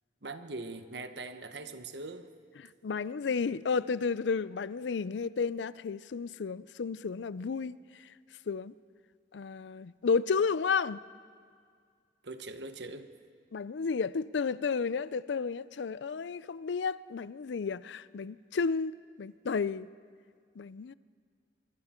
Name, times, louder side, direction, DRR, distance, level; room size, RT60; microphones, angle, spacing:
voice 1, 0.2-2.3 12.2-13.1, right 3 dB, 70° right, 1.2 m, -41 dB
voice 2, 2.8-7.8 8.5-8.7 9.3-11.0 13.5-19.9 20.6-20.9, left 5 dB, 85° left, 0.5 m, -32 dB
25.0 x 24.0 x 4.4 m
head